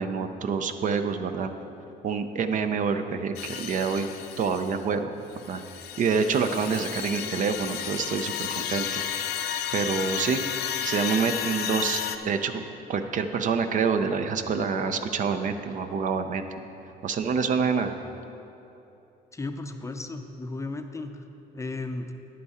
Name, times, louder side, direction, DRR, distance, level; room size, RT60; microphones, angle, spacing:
voice 1, 0.0-1.5 2.0-4.1 4.4-5.1 5.5-5.6 6.0-9.0 9.7-10.4 10.8-12.6 12.9-16.6 17.0-17.9, right 5 dB, 50° right, 8 dB, 0.6 m, -27 dB
sound 1, 3.4-4.8 5.3-12.2, left 9 dB, 75° left, 0.5 m, -33 dB
voice 2, 19.3-21.2 21.5-22.1, left 2 dB, 15° left, 6 dB, 0.5 m, -35 dB
10.0 x 8.5 x 4.2 m, 2.9 s
cardioid pair, 110°, 17 cm